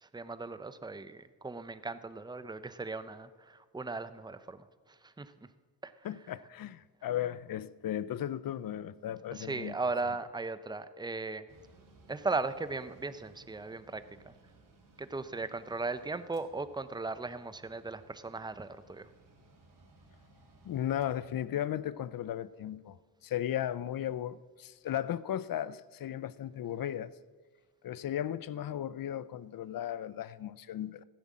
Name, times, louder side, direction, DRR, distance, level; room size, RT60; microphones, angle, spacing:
voice 1, 0.0-4.7 5.0-5.3 5.8-5.9 9.3-11.5 12.1-14.3 15.0-19.1, right 3 dB, 10° right, 0.7 m, -37 dB
voice 2, 6.0-9.7 20.6-23.0 23.2-27.1 27.8-31.0, left 11 dB, 55° left, 0.6 m, -36 dB
Mechanical fan, 11.5-24.8, right 2 dB, 50° right, 3.4 m, -62 dB
15.0 x 10.5 x 7.4 m
cardioid pair, 95°, 40 cm